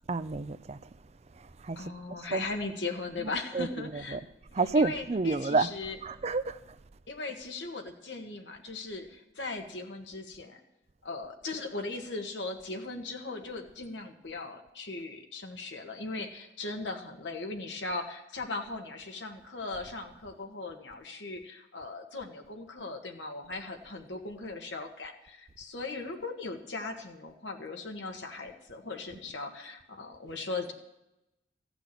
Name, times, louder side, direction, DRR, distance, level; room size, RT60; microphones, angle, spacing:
voice 1, 0.1-0.8 1.6-1.9 2.3-2.4 3.5-3.7 4.1-4.2 4.5-5.7 6.0-6.6, right 3 dB, 35° right, 0.5 m, -28 dB
voice 2, 1.7-4.2 4.7-6.0 7.1-10.6 11.0-30.7, left 3 dB, 85° left, 1.7 m, -38 dB
14.5 x 6.0 x 9.6 m
head